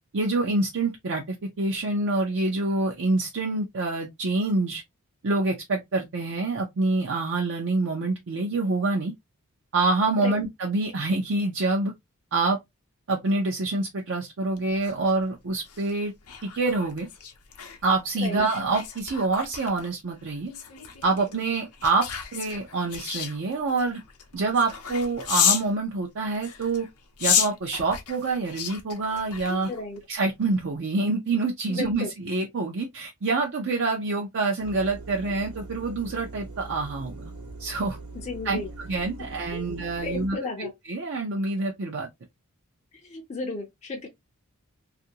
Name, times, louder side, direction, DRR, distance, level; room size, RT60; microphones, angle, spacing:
voice 1, 0.1-4.8 5.2-9.1 9.7-11.9 12.3-12.6 13.1-16.1 16.4-17.1 17.8-20.5 21.0-22.1 22.3-24.0 24.3-26.9 27.2-29.7 30.1-37.3 37.6-38.0 38.4-42.1, right 3 dB, 55° right, 0.5 m, -26 dB
sound 1, 14.6-25.7 26.4-30.0 30.4-30.6, left 8 dB, 75° left, 0.6 m, -32 dB
voice 2, 29.7-30.0 31.7-32.1 38.1-38.7 39.5-40.7 43.0-44.1, left 3 dB, 30° left, 0.5 m, -34 dB
sound 2, 34.6-40.3, right 3 dB, 70° right, 1.0 m, -41 dB
2.6 x 2.5 x 2.7 m
head